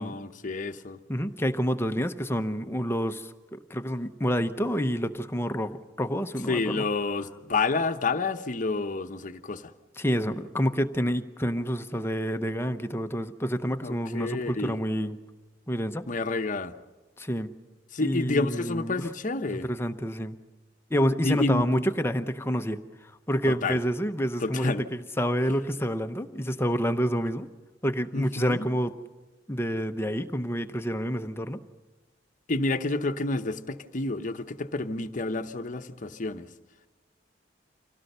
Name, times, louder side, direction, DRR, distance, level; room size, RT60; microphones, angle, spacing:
voice 1, 0.0-1.0 6.5-9.7 13.8-14.8 16.1-16.7 17.9-19.7 21.2-21.8 23.5-23.8 24.4-24.8 28.1-28.7 32.5-36.5, left 3 dB, 45° left, 8 dB, 0.9 m, -29 dB
voice 2, 1.1-6.9 10.0-15.2 15.7-16.0 17.2-17.5 18.0-19.1 19.6-20.4 20.9-27.5 27.8-28.9 29.5-31.6, equal, 15° left, 8 dB, 0.8 m, -28 dB
25.5 x 17.0 x 6.7 m, 1.2 s
head